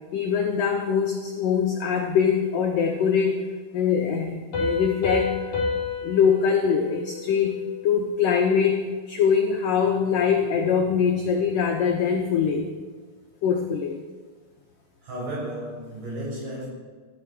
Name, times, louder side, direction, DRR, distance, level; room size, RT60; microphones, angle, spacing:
voice 1, 0.1-3.5 3.7-5.3 6.0-7.6 7.8-12.7 13.4-14.0, left 7 dB, 80° left, 1 dB, 2.0 m, -23 dB
Piano, 4.5-7.9, left 4 dB, 40° left, 5.6 m, -30 dB
voice 2, 15.0-16.7, right 1 dB, 40° right, -4 dB, 7.7 m, -33 dB
18.5 x 13.0 x 4.8 m, 1.5 s
omnidirectional pair, 5.6 m